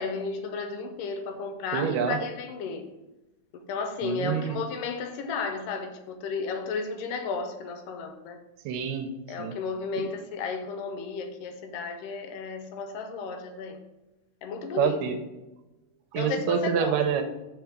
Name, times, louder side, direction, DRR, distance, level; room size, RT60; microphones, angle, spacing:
voice 1, 0.0-2.9 3.7-8.4 9.3-13.8 14.4-15.0 16.2-17.0, left 4 dB, 90° left, 2.4 m, -33 dB
voice 2, 1.7-2.2 4.0-4.6 8.7-9.6 10.0-10.1 14.7-15.2 16.1-17.2, right 7 dB, 85° right, 2.3 m, -27 dB
5.0 x 4.6 x 6.2 m
omnidirectional pair, 3.8 m